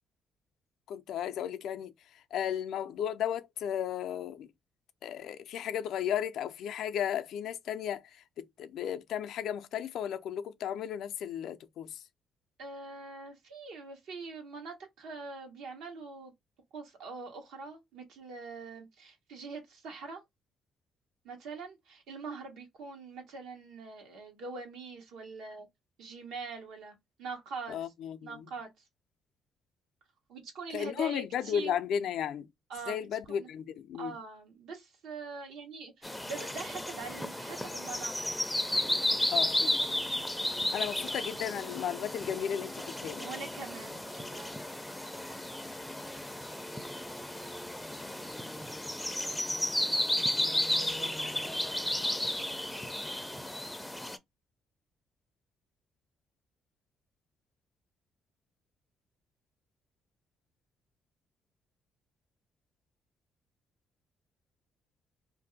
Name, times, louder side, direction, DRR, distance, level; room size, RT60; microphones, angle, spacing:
voice 1, 0.9-1.9 2.3-4.5 5.0-8.0 8.4-12.0 27.7-28.5 30.7-32.5 32.9-34.2 39.3-39.8 40.7-43.3, left 9 dB, 80° left, 0.4 m, -34 dB
voice 2, 12.6-16.3 16.7-20.2 21.2-25.7 26.0-27.9 28.2-28.7 30.3-31.7 32.7-33.5 34.0-38.5 43.2-44.6 49.9-50.9, right 4 dB, 85° right, 1.1 m, -43 dB
sound 1, 36.0-54.2, left 1 dB, 5° left, 0.4 m, -33 dB
2.6 x 2.1 x 3.9 m
cardioid pair, 90°, 0 cm